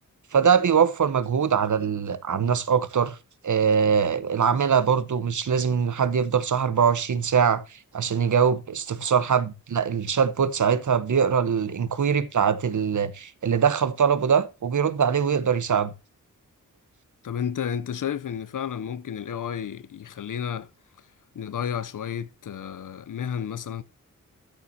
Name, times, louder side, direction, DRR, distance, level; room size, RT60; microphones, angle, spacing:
voice 1, 0.3-3.2 3.4-15.9, right 7 dB, 65° right, 1.0 m, -22 dB
voice 2, 17.2-20.7 21.3-23.8, left 8 dB, 70° left, 0.7 m, -31 dB
13.0 x 7.1 x 2.8 m
wide cardioid pair, 90°, 33 cm